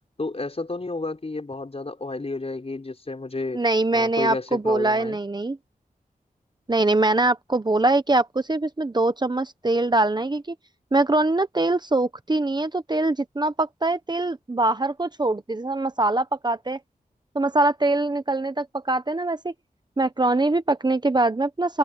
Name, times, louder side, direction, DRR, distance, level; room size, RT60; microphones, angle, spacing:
voice 1, 0.2-3.6 3.9-5.2, left 3 dB, 40° left, 6.0 m, -31 dB
voice 2, 3.5-5.6 6.7-10.5 10.9-16.8 17.3-19.5 20.0-21.8, right 2 dB, 30° right, 0.9 m, -23 dB
wide cardioid pair, 90°, 15 cm